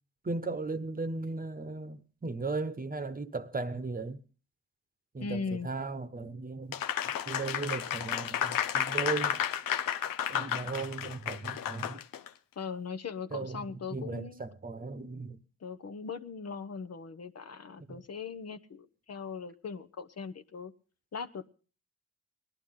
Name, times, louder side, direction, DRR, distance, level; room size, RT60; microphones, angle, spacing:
voice 1, 0.2-4.2 5.1-6.8 7.3-9.4 10.3-12.0 13.3-13.7 13.9-15.4 17.9-18.0, right 3 dB, 25° right, 1.1 m, -36 dB
voice 2, 5.2-5.7 12.6-14.4 15.6-20.7 21.1-21.5, left 5 dB, 45° left, 1.0 m, -39 dB
Applause, 6.7-12.3, left 10 dB, 80° left, 0.8 m, -32 dB
19.5 x 11.5 x 3.8 m
cardioid pair, 85°, 34 cm